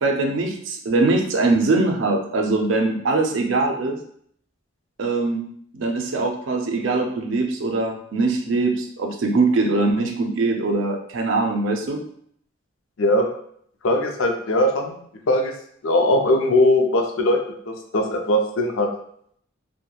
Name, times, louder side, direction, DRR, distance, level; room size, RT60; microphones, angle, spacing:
voice 1, 0.0-4.0 5.0-5.4 5.7-12.0, right 3 dB, 70° right, 3 dB, 0.4 m, -22 dB
voice 2, 13.0-13.3 13.8-15.0 15.3-15.5 15.8-17.4 17.7-18.9, left 1 dB, 90° left, 3 dB, 0.5 m, -20 dB
2.9 x 2.1 x 2.3 m, 0.65 s
head